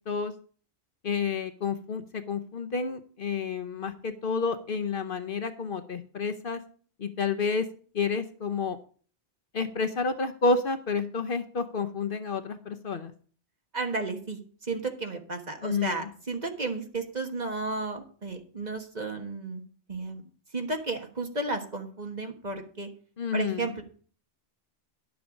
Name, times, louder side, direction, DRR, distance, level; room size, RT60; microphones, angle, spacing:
voice 1, 1.0-6.6 7.0-7.7 7.9-8.8 9.5-13.1 15.6-16.0 23.2-23.6, left 4 dB, 55° left, 7 dB, 0.9 m, -30 dB
voice 2, 13.7-19.6 19.9-22.9 23.3-23.8, right 3 dB, 40° right, 4 dB, 1.5 m, -33 dB
11.0 x 7.0 x 5.0 m, 0.43 s
omnidirectional pair, 1.2 m